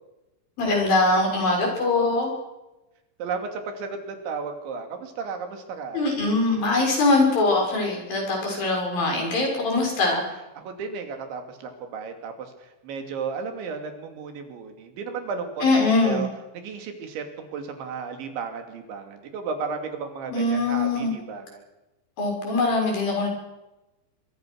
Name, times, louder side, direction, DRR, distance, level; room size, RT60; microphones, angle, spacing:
voice 1, 0.6-2.3 5.9-10.3 15.6-16.3 20.3-21.1 22.2-23.3, left 2 dB, 50° left, 1 dB, 8.3 m, -22 dB
voice 2, 3.2-6.1 10.6-16.3 16.5-21.6, right 5 dB, 75° right, 5 dB, 5.1 m, -34 dB
24.5 x 23.0 x 6.5 m, 0.99 s
omnidirectional pair, 5.3 m